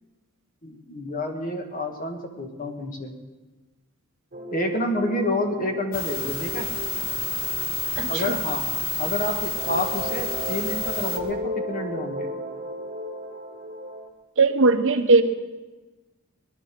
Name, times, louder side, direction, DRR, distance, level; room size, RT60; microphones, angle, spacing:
voice 1, 0.6-3.1 4.5-6.7 8.1-8.6 9.0-12.3, left 1 dB, 40° left, 3 dB, 2.0 m, -29 dB
sound 1, 4.3-9.2 9.5-14.1, right 1 dB, 40° right, 1.4 m, -35 dB
sound 2, 5.9-11.2, left 4 dB, 70° left, 1.5 m, -29 dB
voice 2, 8.0-8.4 14.4-15.2, right 3 dB, 65° right, 8 dB, 1.1 m, -19 dB
19.0 x 12.0 x 6.1 m, 1.2 s
head